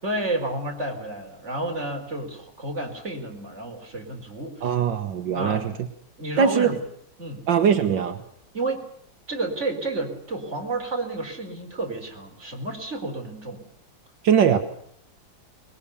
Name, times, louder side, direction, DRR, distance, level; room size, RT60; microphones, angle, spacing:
voice 1, 0.0-4.6 5.3-5.6 6.2-6.8 7.2-7.4 8.5-8.9 9.3-13.6, right 2 dB, 40° right, 1 dB, 4.9 m, -30 dB
voice 2, 4.6-5.7 6.4-6.8 7.5-8.2 14.2-14.6, right 7 dB, 80° right, 6 dB, 1.9 m, -21 dB
24.0 x 21.5 x 7.0 m, 0.67 s
omnidirectional pair, 2.0 m